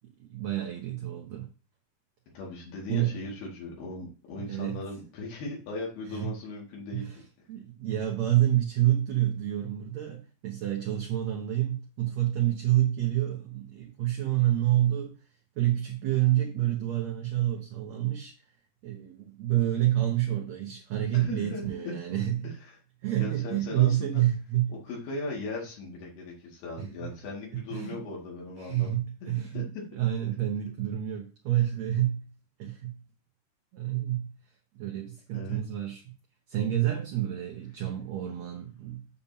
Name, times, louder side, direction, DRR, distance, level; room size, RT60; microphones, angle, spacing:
voice 1, 0.2-1.5 2.9-3.2 4.5-4.8 6.1-6.3 6.9-7.2 7.5-15.2 15.6-18.3 18.8-22.5 23.0-24.8 26.8-27.1 27.7-28.0 28.6-29.7 29.9-32.3 32.6-33.0 33.7-34.3 34.8-36.1 36.5-39.0, right 13 dB, 70° right, 1.7 m, -28 dB
voice 2, 2.3-7.1 21.1-22.0 22.4-22.8 23.2-24.2 24.7-28.9 29.2-29.8 31.6-31.7 35.3-35.6, left 3 dB, 80° left, 4.1 m, -38 dB
8.5 x 7.1 x 2.8 m
omnidirectional pair, 4.5 m